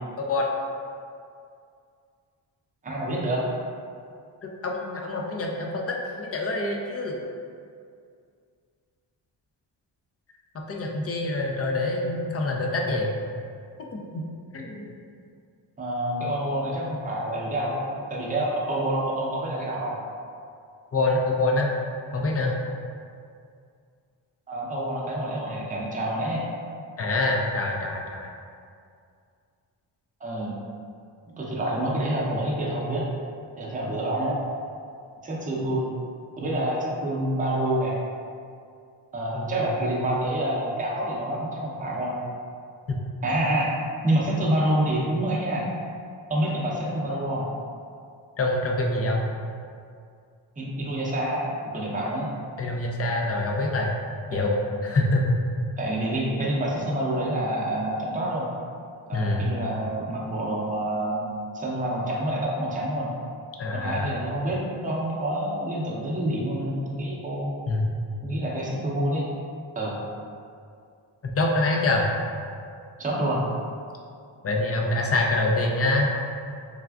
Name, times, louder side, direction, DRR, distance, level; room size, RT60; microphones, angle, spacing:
voice 1, 0.2-0.5 4.6-7.2 10.7-13.1 13.9-14.2 14.5-14.9 20.9-21.7 22.1-22.6 27.0-28.3 39.3-39.6 42.9-43.0 48.4-49.2 52.6-53.9 54.3-55.4 59.1-59.5 63.6-64.1 67.7-67.8 71.2-72.1 74.4-76.1, left 2 dB, 30° left, 0 dB, 0.4 m, -25 dB
voice 2, 2.8-3.4 15.8-20.0 24.5-26.4 30.2-30.5 31.3-33.0 33.6-34.4 35.2-35.9 36.4-38.0 39.1-42.2 43.2-43.7 44.0-45.6 46.3-47.5 50.6-51.5 51.7-52.3 54.3-54.5 55.8-58.5 59.1-61.2 61.5-63.1 63.7-67.5 68.2-69.3 69.8-70.0 73.0-73.5, right 1 dB, 15° right, -4 dB, 0.6 m, -27 dB
3.3 x 2.3 x 2.3 m, 2.3 s
cardioid pair, 60°, 49 cm